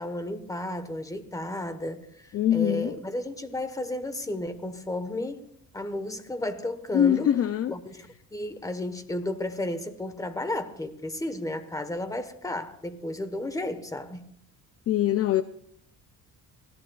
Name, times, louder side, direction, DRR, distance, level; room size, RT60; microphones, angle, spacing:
voice 1, 0.0-5.4 5.7-7.3 7.7-14.2, left 1 dB, 10° left, 1.1 m, -33 dB
voice 2, 2.3-2.9 6.9-7.7 14.9-15.4, left 10 dB, 45° left, 0.5 m, -23 dB
24.5 x 16.5 x 2.3 m
cardioid pair, 135°, 35 cm